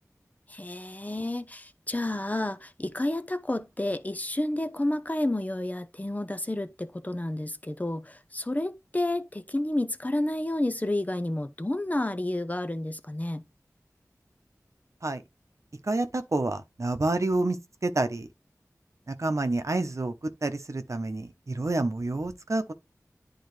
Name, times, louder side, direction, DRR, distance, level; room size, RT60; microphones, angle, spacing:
voice 1, 0.5-13.4, left 1 dB, 25° left, 0.7 m, -30 dB
voice 2, 15.8-18.3 19.1-20.1 20.4-22.7, right 2 dB, 55° right, 0.9 m, -28 dB
10.5 x 3.8 x 3.2 m
wide cardioid pair, 55°, 6 cm